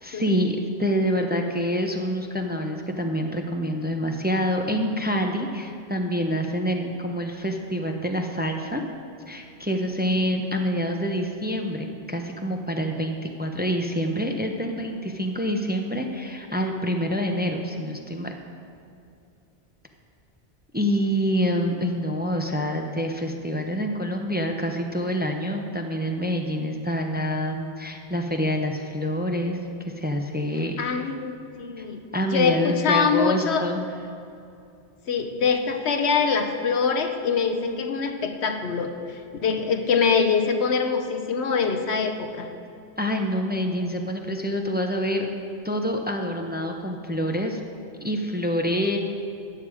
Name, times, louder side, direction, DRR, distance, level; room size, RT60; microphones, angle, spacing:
voice 1, 0.0-8.8 9.3-18.3 20.7-29.6 30.0-30.8 31.8-31.9 32.1-33.9 43.0-45.3 45.6-47.6 48.0-49.0, equal, 10° right, 3 dB, 0.7 m, -26 dB
voice 2, 30.8-32.0 32.3-33.7 35.1-42.5, left 5 dB, 85° left, 6 dB, 1.2 m, -24 dB
13.5 x 9.1 x 4.9 m, 2.6 s
omnidirectional pair, 1.1 m